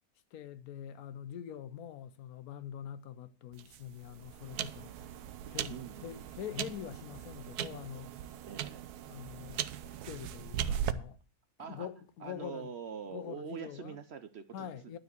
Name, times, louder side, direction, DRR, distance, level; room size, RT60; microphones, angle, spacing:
voice 1, 0.3-4.9 5.5-8.2 9.1-11.2 11.7-12.7 13.1-14.0 14.5-15.0, left 9 dB, 75° left, 1.1 m, -44 dB
sound 1, 3.5-10.9, right 10 dB, 90° right, 1.2 m, -39 dB
voice 2, 5.7-6.3 8.4-8.8 11.6-11.9 12.2-14.7, right 7 dB, 55° right, 0.8 m, -44 dB
12.0 x 4.6 x 8.0 m
omnidirectional pair, 1.6 m